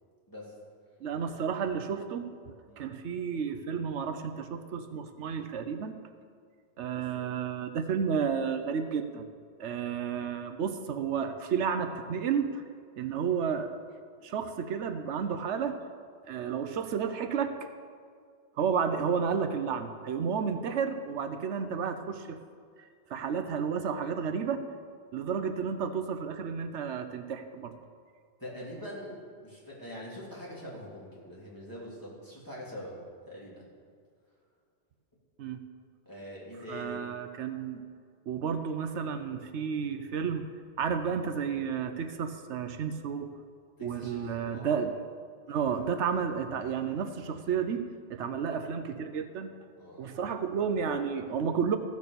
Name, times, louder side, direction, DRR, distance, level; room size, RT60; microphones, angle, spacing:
voice 1, 0.3-0.6 1.3-1.4 2.7-2.9 7.0-7.1 28.4-33.6 36.0-37.1 43.8-44.8 49.8-50.1, equal, 15° left, -6 dB, 3.2 m, -44 dB
voice 2, 1.0-2.3 2.7-6.0 6.8-9.3 9.6-12.6 13.0-13.7 14.2-15.8 16.2-17.6 18.6-22.4 22.8-24.6 25.1-27.7 35.4-35.6 36.7-37.8 38.3-40.5 40.8-43.4 43.8-45.0 45.5-49.5 50.0-51.8, right 6 dB, 80° right, 8 dB, 1.0 m, -32 dB
15.0 x 6.4 x 6.8 m, 2.1 s
omnidirectional pair, 1.2 m